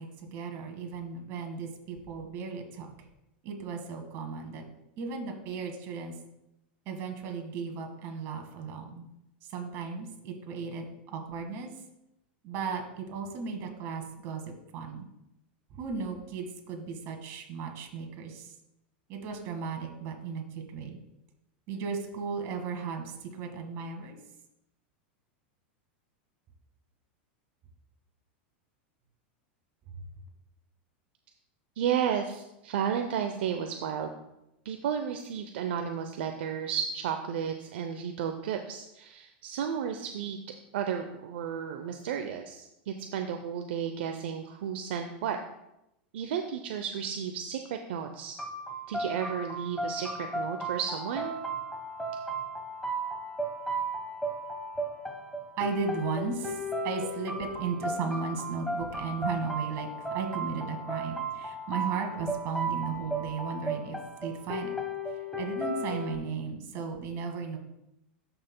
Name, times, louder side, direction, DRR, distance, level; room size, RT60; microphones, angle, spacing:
voice 1, 0.0-2.9 3.4-4.6 5.0-6.1 6.9-9.1 9.4-11.7 12.4-15.1 15.7-18.5 19.1-21.0 21.7-24.2 55.6-64.8 65.1-67.6, right 5 dB, 50° right, 3 dB, 1.8 m, -36 dB
voice 2, 31.8-34.1 34.6-40.4 40.7-45.4 46.1-48.3 48.9-51.3, right 8 dB, 75° right, 5 dB, 0.6 m, -33 dB
sound 1, 48.4-66.2, right 1 dB, 5° left, 1.2 m, -35 dB
12.0 x 5.7 x 2.2 m, 0.87 s
hypercardioid pair, 115°, 6 cm